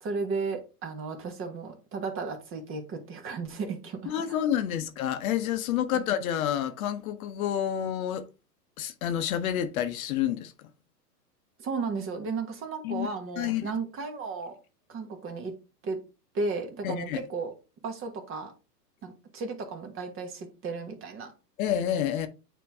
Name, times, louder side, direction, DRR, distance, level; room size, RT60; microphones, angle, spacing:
voice 1, 0.0-4.4 5.9-6.0 11.6-14.6 14.9-15.5 15.8-16.0 16.3-17.5 17.8-18.5 19.0-21.3, right 4 dB, 25° right, 1.3 m, -34 dB
voice 2, 4.1-8.3 8.8-10.7 12.8-13.1 13.4-13.7 16.8-17.2 21.6-22.3, left 10 dB, 60° left, 0.9 m, -29 dB
8.9 x 3.0 x 3.5 m
hypercardioid pair, 115°, 48 cm